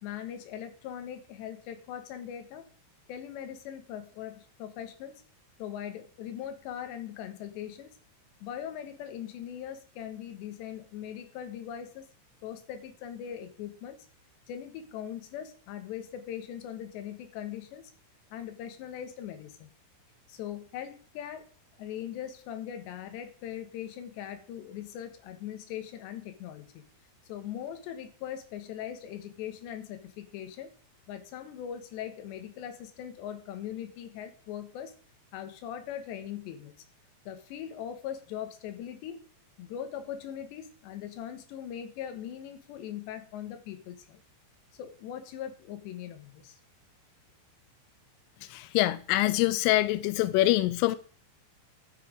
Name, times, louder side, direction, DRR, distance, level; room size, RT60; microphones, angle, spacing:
voice 1, 0.0-2.7 3.1-5.1 5.6-7.9 8.4-12.1 12.4-14.0 14.5-17.8 18.3-19.7 20.3-21.5 21.8-26.8 27.3-30.7 31.1-34.9 35.3-36.7 37.3-39.2 39.6-44.2 44.7-46.6, left 10 dB, 70° left, 3.4 m, -40 dB
voice 2, 48.5-51.0, left 16 dB, 90° left, 3.2 m, -25 dB
12.5 x 6.0 x 5.0 m
omnidirectional pair, 5.6 m